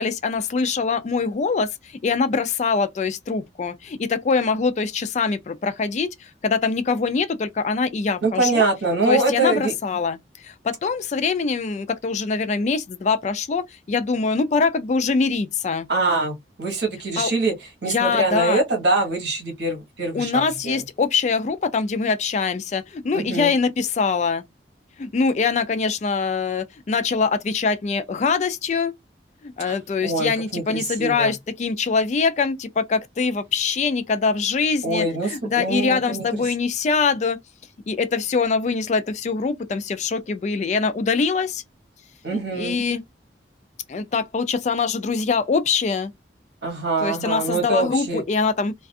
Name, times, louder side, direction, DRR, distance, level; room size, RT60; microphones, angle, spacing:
voice 1, 0.0-8.7 9.0-15.9 17.2-17.3 17.8-18.6 20.1-24.4 25.0-28.9 29.4-37.4 37.9-41.6 42.3-43.0 43.9-46.1 47.0-48.7, left 4 dB, 40° left, 0.3 m, -23 dB
voice 2, 8.2-9.7 15.9-17.5 17.8-20.8 23.1-23.5 29.7-29.8 30.0-31.3 34.8-36.4 42.2-42.8 46.6-48.2, right 2 dB, 70° right, 1.0 m, -24 dB
2.4 x 2.3 x 2.5 m
head